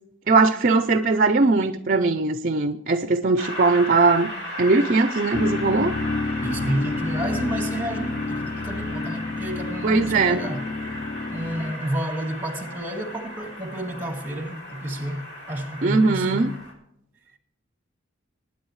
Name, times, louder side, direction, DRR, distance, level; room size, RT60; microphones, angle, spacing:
voice 1, 0.3-4.3 4.6-6.0 9.8-10.4 15.8-16.5, right 3 dB, 45° right, 0.5 m, -20 dB
Train, 3.4-16.7, left 1 dB, 55° left, 2.9 m, -36 dB
sound 1, 5.3-11.7, left 3 dB, 35° left, 0.3 m, -30 dB
voice 2, 6.4-10.6 11.3-16.6 17.3-17.4, right 1 dB, 10° right, 1.9 m, -30 dB
20.5 x 9.5 x 3.2 m
head